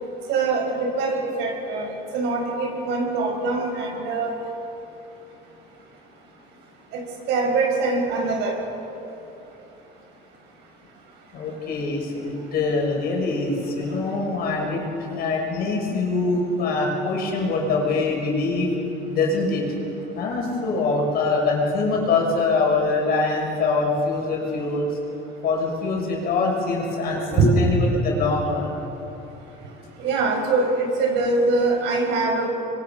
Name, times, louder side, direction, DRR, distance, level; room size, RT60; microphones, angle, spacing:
voice 1, 0.3-4.3 7.3-8.6 27.1-27.6 30.0-32.5, right 3 dB, 80° right, 1 dB, 6.0 m, -23 dB
voice 2, 11.3-18.7 19.1-19.6 20.1-24.9 25.4-28.7, left 3 dB, 60° left, -1 dB, 6.5 m, -24 dB
26.5 x 23.5 x 6.0 m, 3.0 s
cardioid pair, 125°, 18 cm